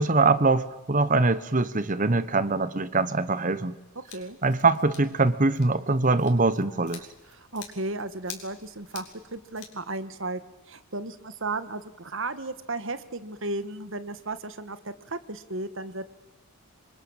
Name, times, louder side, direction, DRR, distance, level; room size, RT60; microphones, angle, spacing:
voice 1, 0.0-3.8 4.4-7.1, right 3 dB, 35° right, 15 dB, 1.1 m, -23 dB
Scissors, 4.0-9.7, left 8 dB, 85° left, 5.3 m, -48 dB
voice 2, 7.3-9.1 9.3-10.4 10.7-16.1, right 2 dB, 60° right, 12 dB, 1.6 m, -34 dB
27.5 x 25.5 x 7.4 m, 1.0 s
head